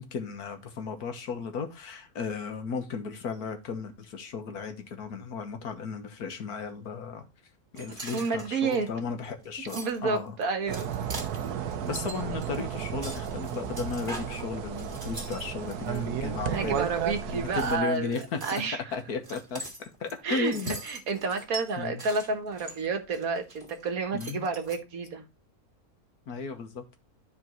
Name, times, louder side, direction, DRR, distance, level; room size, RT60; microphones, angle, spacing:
voice 1, 0.0-7.2 7.7-10.4 11.8-16.9 17.3-18.4 18.9-20.8 21.8-22.0 24.1-24.5 26.3-27.0, left 5 dB, 85° left, 1.7 m, -35 dB
sound 1, 7.7-16.0 16.4-17.2 17.5-23.9 24.2-24.8, right 2 dB, 30° right, 2.1 m, -43 dB
voice 2, 8.1-8.9 9.7-10.9 16.5-18.8 20.2-25.2, right 4 dB, 70° right, 1.7 m, -30 dB
sound 2, 10.7-17.8, right 8 dB, 85° right, 1.3 m, -33 dB
12.5 x 4.5 x 3.0 m
omnidirectional pair, 1.6 m